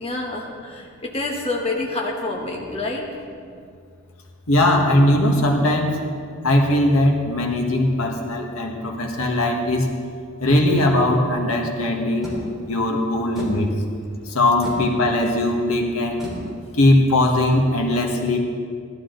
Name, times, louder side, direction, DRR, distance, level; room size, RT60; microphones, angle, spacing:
voice 1, 0.0-3.2, left 2 dB, 25° left, -1 dB, 1.2 m, -27 dB
voice 2, 4.5-6.0 6.4-9.9 10.4-12.3 12.7-13.7 14.2-16.2 16.7-18.4, left 1 dB, 70° left, 1 dB, 1.6 m, -19 dB
sound 1, 12.2-17.8, equal, ahead, 3.5 m, -36 dB
16.0 x 12.0 x 4.0 m, 2.3 s
head